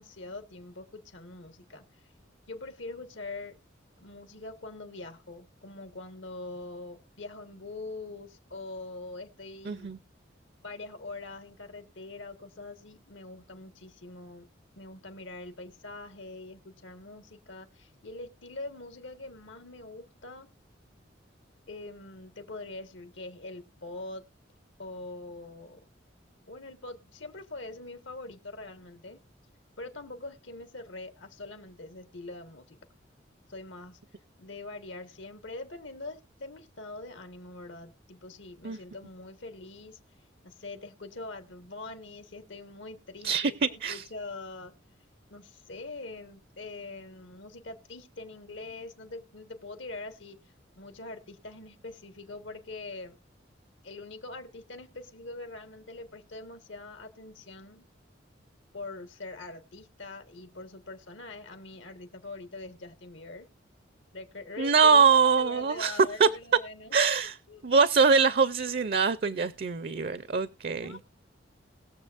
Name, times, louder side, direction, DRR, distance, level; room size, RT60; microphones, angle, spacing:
voice 1, 0.0-1.8 2.5-3.6 4.0-9.9 10.6-14.5 14.8-20.5 21.7-24.2 24.8-25.8 26.5-29.2 29.8-32.8 33.5-34.0 34.4-40.0 40.4-44.7 45.3-50.4 50.8-53.2 53.8-57.8 58.7-63.5 64.1-65.1 65.3-67.0 67.5-67.6 70.7-71.0, left 2 dB, 80° left, 1.5 m, -43 dB
voice 2, 9.7-10.0 38.6-38.8 43.2-44.0 64.6-66.3 66.9-67.4 67.6-71.0, right 5 dB, 55° right, 0.5 m, -23 dB
20.5 x 7.0 x 2.5 m
head